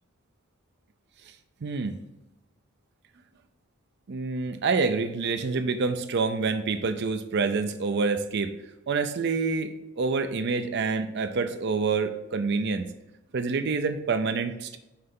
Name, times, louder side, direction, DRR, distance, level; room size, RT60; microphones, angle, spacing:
voice 1, 1.6-2.0 4.1-8.5 8.9-12.9 13.3-14.8, right 4 dB, 50° right, 8 dB, 0.5 m, -27 dB
5.7 x 3.3 x 5.3 m, 0.96 s
head